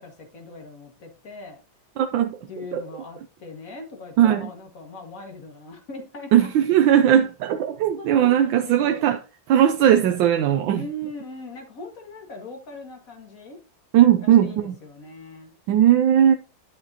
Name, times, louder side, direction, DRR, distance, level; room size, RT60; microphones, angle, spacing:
voice 1, 0.0-1.6 2.5-6.5 8.0-9.0 10.7-13.6 14.2-15.5, left 1 dB, 45° left, 2.1 m, -40 dB
voice 2, 2.0-2.4 2.7-2.8 4.2-4.5 6.3-9.2 9.5-10.8 13.9-14.7 15.7-16.3, right 10 dB, 85° right, 1.4 m, -18 dB
11.0 x 6.7 x 2.8 m
omnidirectional pair, 2.0 m